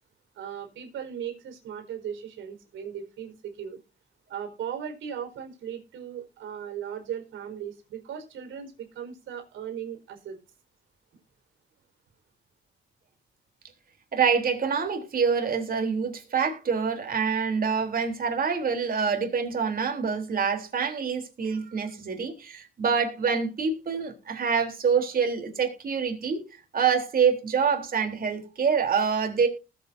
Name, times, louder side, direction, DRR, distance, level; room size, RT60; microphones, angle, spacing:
voice 1, 0.3-3.8 4.3-10.4, right 8 dB, 80° right, 4.6 m, -37 dB
voice 2, 14.1-26.4 26.7-29.5, right 6 dB, 45° right, 3.5 m, -26 dB
20.0 x 8.2 x 2.7 m
cardioid pair, 90°, 20 cm